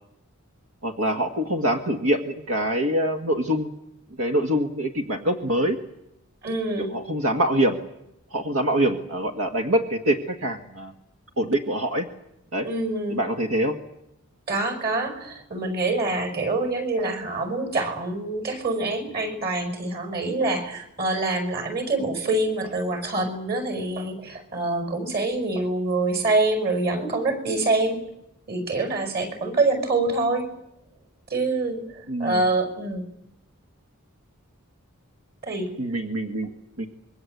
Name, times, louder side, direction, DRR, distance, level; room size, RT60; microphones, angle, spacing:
voice 1, 0.8-3.7 4.2-5.8 6.9-7.8 8.3-10.9 11.4-12.1 12.5-12.7 13.1-13.8 32.1-32.4 35.8-36.5 36.8-36.9, right 1 dB, 80° right, 5 dB, 1.8 m, -24 dB
voice 2, 6.4-6.9 12.6-13.2 14.5-28.1 28.5-30.5 31.3-31.8 32.2-33.0 35.4-35.7, right 2 dB, 45° right, 7 dB, 5.8 m, -25 dB
26.0 x 23.0 x 8.1 m, 0.84 s
head